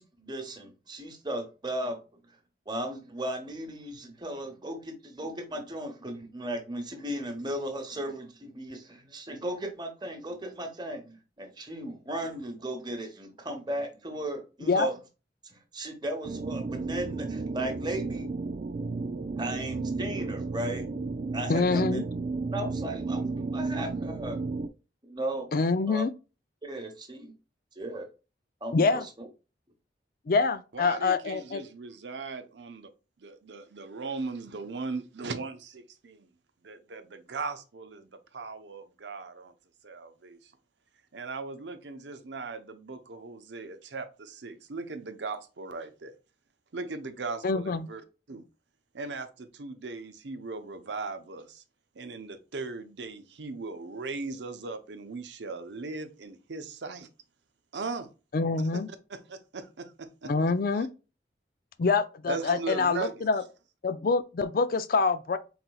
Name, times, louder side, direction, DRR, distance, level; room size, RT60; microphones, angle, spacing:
voice 1, 0.0-2.0 2.7-14.9 15.5-18.3 19.4-20.9 21.3-22.0 22.5-24.4 25.0-25.5 25.9-26.0 26.6-27.3 27.8-28.0 28.6-29.3, right 1 dB, 25° right, 1.0 m, -36 dB
sound 1, 16.2-24.7, right 3 dB, 40° right, 0.3 m, -33 dB
voice 2, 21.5-22.0 25.5-26.1 28.7-29.1 30.3-31.6 47.4-47.9 58.3-58.9 60.2-60.9 61.8-63.4 63.8-65.4, left 4 dB, 55° left, 0.4 m, -26 dB
voice 3, 30.7-32.9 33.2-36.3 36.6-39.5 39.8-40.5 41.1-46.1 46.7-48.0 48.3-48.4 48.9-51.6 52.0-57.1 57.7-58.1 58.7-58.8 59.1-60.3 60.7-60.9 62.3-63.3, right 4 dB, 85° right, 0.7 m, -38 dB
4.3 x 3.9 x 2.3 m
head